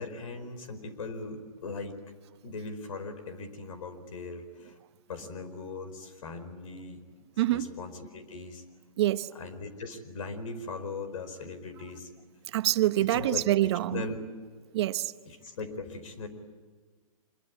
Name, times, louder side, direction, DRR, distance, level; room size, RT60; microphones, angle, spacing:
voice 1, 0.0-2.0 2.4-4.7 5.1-7.0 7.5-8.6 9.3-12.1 13.0-14.2 15.3-16.3, left 3 dB, 65° left, 10 dB, 4.7 m, -39 dB
voice 2, 7.4-7.7 9.0-9.3 12.5-14.0 14.7-15.1, right 14 dB, 45° right, 12 dB, 0.9 m, -26 dB
26.5 x 22.5 x 9.9 m, 1.5 s
hypercardioid pair, 140°, 18 cm